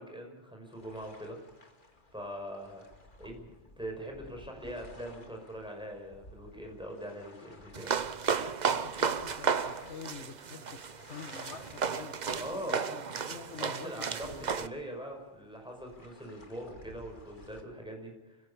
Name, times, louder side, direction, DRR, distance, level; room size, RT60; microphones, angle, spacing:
voice 1, 0.0-1.4 2.1-2.8 3.2-7.9 12.4-12.8 13.6-18.4, equal, 5° right, 2 dB, 5.5 m, -42 dB
sound 1, 0.7-17.6, left 1 dB, 45° left, 2.5 m, -56 dB
sound 2, 7.7-14.7, right 6 dB, 45° right, 0.8 m, -33 dB
voice 2, 8.7-14.5, left 6 dB, 75° left, 9 dB, 1.5 m, -47 dB
26.0 x 16.5 x 7.0 m, 1.1 s
omnidirectional pair, 1.2 m